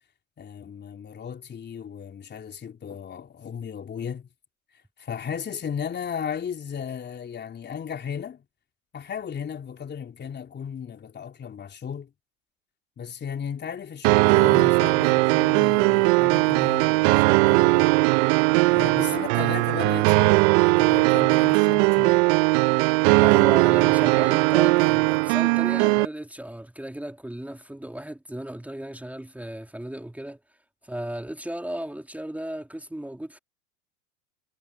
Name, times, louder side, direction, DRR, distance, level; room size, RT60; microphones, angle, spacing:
voice 1, 0.4-4.3 5.0-8.4 8.9-12.1 13.0-18.0 18.7-22.3, left 7 dB, 25° left, 3.7 m, -35 dB
sound 1, 14.0-26.1, right 27 dB, 55° right, 0.6 m, -19 dB
voice 2, 18.9-19.5 22.9-30.4 30.8-33.4, right 1 dB, 5° right, 2.2 m, -35 dB
hypercardioid pair, 90°, 40 cm